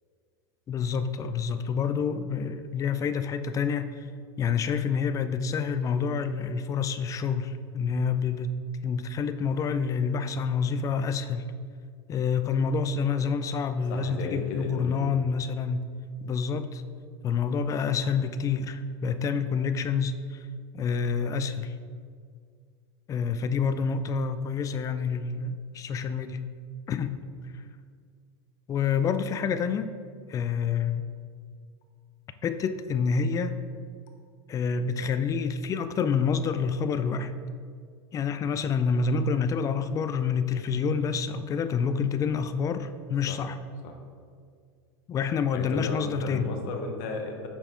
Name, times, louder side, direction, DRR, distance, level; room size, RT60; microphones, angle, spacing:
voice 1, 0.7-4.1 4.4-8.5 8.8-11.5 12.1-15.9 16.2-16.8 17.2-20.5 20.7-21.7 23.1-26.4 26.9-27.2 28.7-29.9 30.3-31.1 32.4-33.5 34.5-37.3 38.1-43.6 45.1-46.5, left 6 dB, 25° left, 11 dB, 0.3 m, -28 dB
voice 2, 13.9-15.0 43.3-43.4 43.8-43.9 45.5-47.5, left 3 dB, 55° left, 3 dB, 1.0 m, -34 dB
5.4 x 4.4 x 4.4 m, 2.1 s
hypercardioid pair, 105°, 14 cm